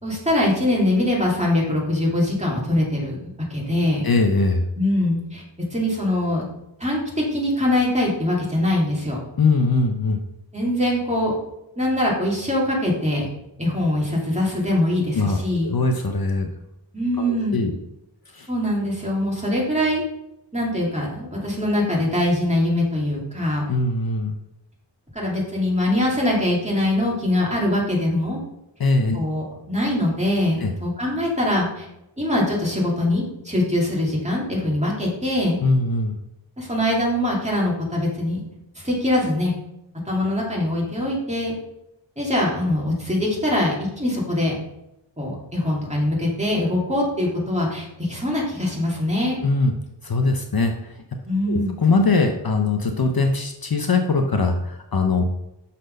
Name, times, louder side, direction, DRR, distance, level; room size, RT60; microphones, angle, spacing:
voice 1, 0.0-3.2 3.5-4.1 4.8-5.4 5.7-6.4 6.8-9.2 10.5-11.3 11.8-13.3 13.6-15.7 16.9-17.6 18.5-20.0 20.5-23.6 25.1-28.4 29.1-31.9 32.2-35.6 36.6-38.4 38.8-39.5 40.1-41.5 42.2-44.5 45.2-49.4 51.3-51.7, left 1 dB, 15° right, -4 dB, 2.6 m, -23 dB
voice 2, 4.0-4.6 9.4-10.2 15.2-15.4 15.6-16.5 17.2-17.3 17.5-17.8 18.3-18.5 23.7-24.4 28.8-29.2 30.6-30.7 35.6-36.2 49.4-49.7 50.0-50.9 51.5-55.2, left 3 dB, 50° left, 4 dB, 0.7 m, -21 dB
6.4 x 4.2 x 5.3 m, 0.86 s
wide cardioid pair, 55°, 46 cm